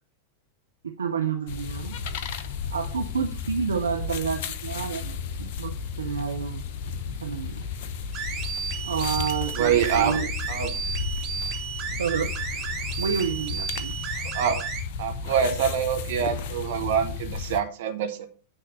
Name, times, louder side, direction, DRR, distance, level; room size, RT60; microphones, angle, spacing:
voice 1, 0.8-2.0 2.7-6.6 7.2-7.6 8.8-10.3 12.0-12.3 13.0-13.9, right 6 dB, 70° right, 4 dB, 0.7 m, -29 dB
sound 1, 1.5-17.6, left 6 dB, 50° left, 0.8 m, -33 dB
sound 2, 8.1-14.8, right 6 dB, 35° right, 1.5 m, -33 dB
voice 2, 9.5-10.2 10.5-10.7 14.3-14.6 15.0-18.3, right 8 dB, 55° right, 7 dB, 1.3 m, -25 dB
9.7 x 3.6 x 6.9 m, 0.40 s
figure-of-eight pair, 90°, 0 cm